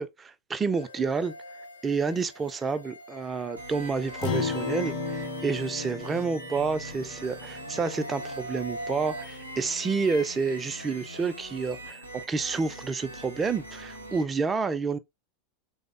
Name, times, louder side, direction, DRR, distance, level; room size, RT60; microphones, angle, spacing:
voice 1, 0.0-1.3 1.8-15.0, right 4 dB, 20° right, 0.4 m, -29 dB
sound 1, 0.7-9.2, equal, 80° left, 0.5 m, -43 dB
sound 2, 3.6-14.2, right 1 dB, 90° right, 0.5 m, -42 dB
Acoustic guitar, 4.2-8.9, left 5 dB, 50° left, 0.8 m, -35 dB
3.3 x 2.0 x 2.5 m
figure-of-eight pair, 85°, 0 cm